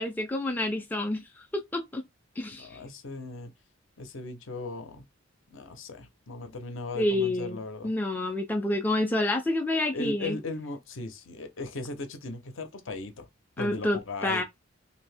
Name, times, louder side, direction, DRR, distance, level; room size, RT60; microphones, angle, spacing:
voice 1, 0.0-1.4 1.7-2.0 2.4-2.7 7.0-10.4 13.6-14.4, left 1 dB, 10° left, 0.3 m, -28 dB
voice 2, 2.5-3.5 4.0-5.1 5.5-7.9 9.9-13.3 13.6-14.4, left 3 dB, 65° left, 0.7 m, -37 dB
2.7 x 2.6 x 3.3 m
head